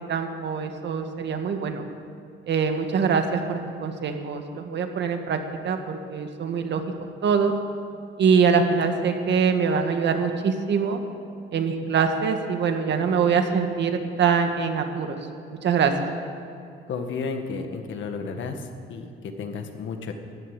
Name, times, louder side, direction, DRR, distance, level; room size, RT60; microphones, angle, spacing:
voice 1, 0.1-1.9 2.5-5.4 5.6-6.8 7.2-7.5 8.2-11.0 11.5-15.2 15.6-15.9, right 6 dB, 60° right, 5 dB, 1.8 m, -23 dB
voice 2, 16.9-20.1, left 4 dB, 70° left, 5 dB, 1.8 m, -32 dB
14.0 x 10.5 x 9.4 m, 2.6 s
cardioid pair, 90°, 20 cm